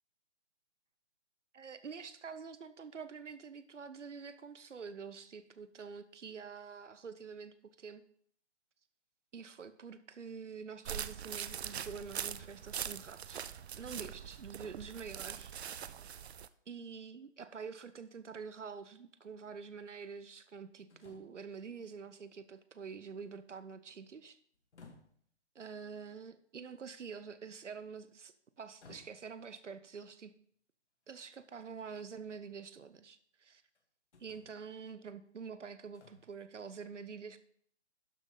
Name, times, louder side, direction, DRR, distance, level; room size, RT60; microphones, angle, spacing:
voice 1, 1.5-8.0 9.3-13.4 13.7-15.5 16.7-24.4 25.5-30.3 31.1-33.6 34.2-37.4, right 5 dB, 90° right, 12 dB, 0.9 m, -47 dB
sound 1, 10.9-16.5, right 9 dB, 65° right, 0.6 m, -42 dB
sound 2, 18.0-18.1 20.9-21.5 22.0-22.2 22.6-23.5 24.5-25.3 27.1-27.5 28.8-29.5 31.1-31.2 31.8-32.5 33.7-33.8 34.1-34.8 35.9-36.3, left 4 dB, 70° left, 2.4 m, -60 dB
12.0 x 6.4 x 3.8 m, 0.63 s
figure-of-eight pair, 145°, 35 cm